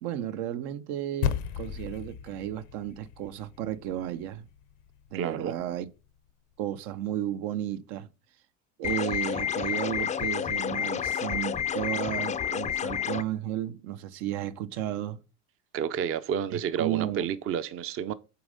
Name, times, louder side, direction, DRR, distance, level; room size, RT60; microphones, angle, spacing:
voice 1, 0.0-4.4 5.1-5.9 6.6-8.1 8.8-15.2 16.5-17.2, right 12 dB, 75° right, 0.8 m, -33 dB
sound 1, 1.2-5.7, left 9 dB, 85° left, 0.9 m, -36 dB
voice 2, 5.1-5.5 15.7-18.1, right 8 dB, 35° right, 0.5 m, -30 dB
sound 2, 8.8-13.2, left 8 dB, 20° left, 0.4 m, -30 dB
6.9 x 4.1 x 5.1 m
supercardioid pair, 110°, 37 cm